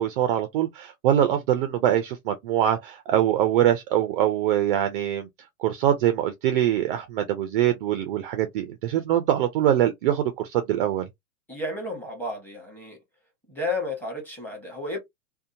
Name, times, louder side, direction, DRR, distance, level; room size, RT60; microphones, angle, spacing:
voice 1, 0.0-5.3 5.6-11.1, right 11 dB, 40° right, 0.4 m, -23 dB
voice 2, 11.5-13.0 13.5-15.0, left 2 dB, 5° left, 1.1 m, -32 dB
2.7 x 2.1 x 2.6 m
hypercardioid pair, 135°, 44 cm